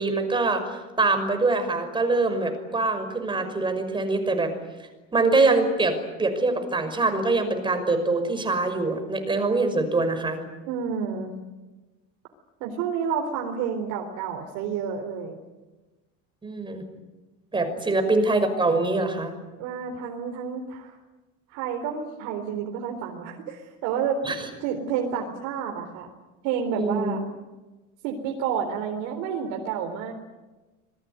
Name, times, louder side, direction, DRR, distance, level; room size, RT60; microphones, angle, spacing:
voice 1, 0.0-4.5 5.1-10.4 16.4-16.8 17.5-19.3 24.2-24.4 26.7-27.1, right 3 dB, 15° right, 7 dB, 5.6 m, -24 dB
voice 2, 10.7-11.3 12.6-15.4 19.6-21.0 21.5-24.2 24.6-26.1 26.4-27.2 28.0-30.1, right 7 dB, 80° right, 2 dB, 4.1 m, -30 dB
27.0 x 21.5 x 9.6 m, 1.2 s
cardioid pair, 140°, 30 cm